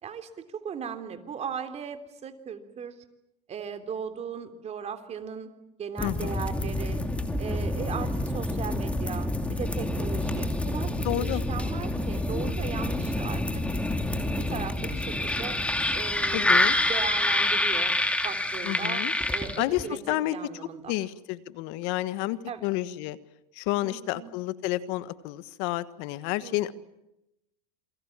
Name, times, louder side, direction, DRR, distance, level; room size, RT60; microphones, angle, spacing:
voice 1, 0.0-3.0 3.5-5.5 5.8-7.0 7.4-13.6 14.2-15.6 15.9-16.6 16.9-17.9 18.2-19.0 19.3-20.9 22.5-22.7 23.8-24.3 26.4-26.7, right 7 dB, 30° right, 8 dB, 3.4 m, -37 dB
voice 2, 6.0-6.4 11.0-11.4 16.3-16.8 18.6-19.1 19.6-20.4 20.9-23.2 23.5-26.7, left 16 dB, 60° left, 14 dB, 1.4 m, -30 dB
sound 1, 6.0-19.9, left 1 dB, 5° left, 2.7 m, -27 dB
28.5 x 23.0 x 7.4 m, 0.88 s
supercardioid pair, 110°, 21 cm